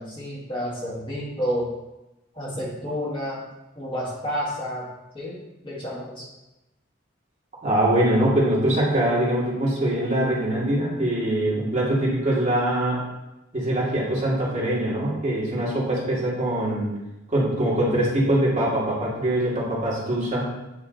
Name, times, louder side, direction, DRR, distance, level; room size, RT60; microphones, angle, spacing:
voice 1, 0.0-1.7 2.3-3.5 3.7-4.9 5.1-6.3, equal, 25° left, -6 dB, 1.5 m, -30 dB
voice 2, 7.6-13.0 13.5-16.9 17.3-20.5, right 1 dB, 40° right, -7 dB, 2.0 m, -23 dB
8.4 x 3.2 x 3.9 m, 0.98 s
head